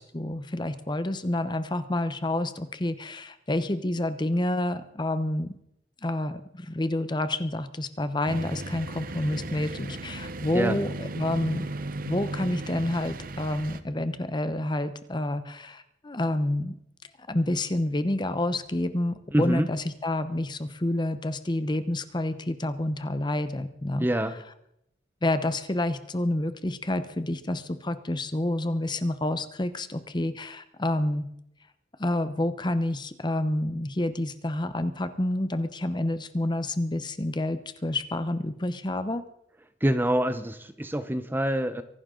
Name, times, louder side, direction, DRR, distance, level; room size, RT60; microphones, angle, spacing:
voice 1, 0.1-5.5 6.0-11.7 12.1-16.7 17.3-24.1 25.2-31.3 32.0-39.2, left 1 dB, 25° left, 11 dB, 0.8 m, -28 dB
sound 1, 8.3-13.8, right 2 dB, 50° right, 0.8 m, -36 dB
voice 2, 19.3-19.7 24.0-24.4 39.8-41.8, right 1 dB, 10° right, 11 dB, 0.7 m, -26 dB
24.0 x 11.5 x 3.8 m, 0.77 s
head